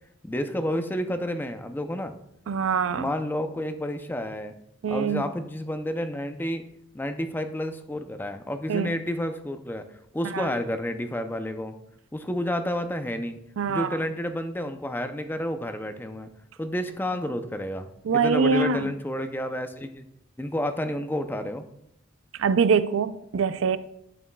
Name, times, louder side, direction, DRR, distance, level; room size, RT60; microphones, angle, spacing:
voice 1, 0.2-2.2 2.9-4.5 4.9-6.6 6.9-11.7 12.1-13.4 13.7-16.3 16.6-20.1 20.4-21.7, left 1 dB, 10° left, 0.5 m, -30 dB
voice 2, 2.5-3.1 4.8-5.3 8.7-8.9 10.3-10.5 13.6-14.0 18.0-18.9 22.3-23.8, right 5 dB, 80° right, 0.4 m, -24 dB
11.0 x 6.2 x 2.2 m
head